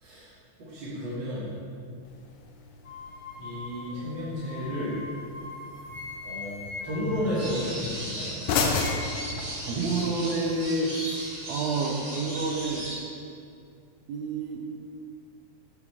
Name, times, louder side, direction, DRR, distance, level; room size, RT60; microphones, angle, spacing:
voice 1, 0.7-1.5 3.4-5.0 6.2-8.4, equal, 45° right, -11 dB, 2.2 m, -32 dB
sound 1, 2.0-10.0, left 4 dB, 80° left, 2.1 m, -35 dB
sound 2, 2.8-8.1 8.4-9.5, left 3 dB, 60° left, 1.1 m, -42 dB
sound 3, 7.4-13.0, right 1 dB, 20° right, 1.8 m, -37 dB
voice 2, 9.7-11.2 11.5-12.9 14.1-14.8, right 3 dB, 75° right, 1 dB, 1.8 m, -29 dB
7.1 x 6.5 x 4.3 m, 2.4 s
omnidirectional pair, 3.6 m